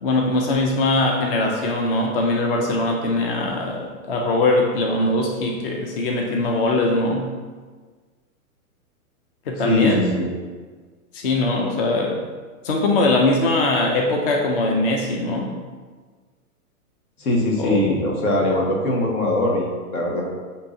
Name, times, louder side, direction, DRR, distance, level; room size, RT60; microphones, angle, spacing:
voice 1, 0.0-7.3 9.5-10.1 11.1-12.2 12.6-15.5 17.6-17.8, left 2 dB, 40° left, 1 dB, 0.4 m, -21 dB
voice 2, 9.6-10.3 17.2-20.3, left 1 dB, 75° left, -2 dB, 1.4 m, -21 dB
6.7 x 2.7 x 2.5 m, 1.5 s
hypercardioid pair, 150°, 45 cm